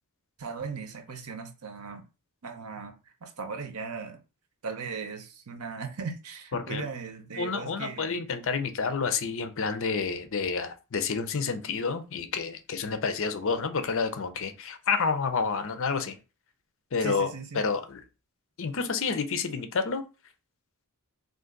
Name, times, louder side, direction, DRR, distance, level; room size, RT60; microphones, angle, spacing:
voice 1, 0.4-2.0 2.4-4.2 4.6-8.2 17.0-17.6, right 5 dB, 85° right, 0.8 m, -38 dB
voice 2, 6.5-6.8 7.4-16.2 16.9-18.0 18.6-20.0, left 5 dB, 60° left, 0.6 m, -29 dB
3.8 x 2.6 x 3.8 m
head